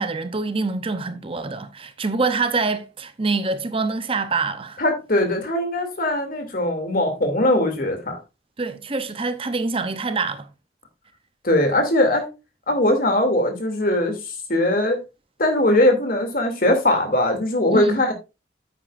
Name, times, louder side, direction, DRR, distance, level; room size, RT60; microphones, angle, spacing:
voice 1, 0.0-4.8 8.6-10.5 17.7-18.0, right 3 dB, 30° right, 0.7 m, -25 dB
voice 2, 4.8-8.2 11.4-12.3 12.7-14.2 14.5-15.0 15.4-18.1, left 1 dB, 55° left, 2.7 m, -20 dB
9.8 x 8.8 x 2.5 m
head